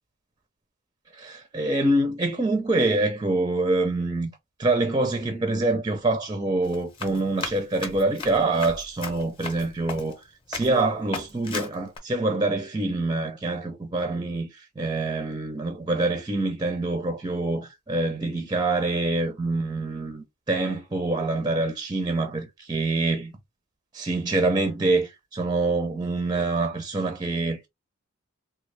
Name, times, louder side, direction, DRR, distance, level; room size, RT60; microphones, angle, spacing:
voice 1, 1.1-4.3 4.6-10.2 10.5-23.3 23.9-27.7, right 2 dB, 20° right, 0.4 m, -25 dB
Run, 6.6-10.2 10.5-10.8 11.1-12.0, left 4 dB, 25° left, 0.7 m, -36 dB
3.4 x 2.3 x 3.2 m
head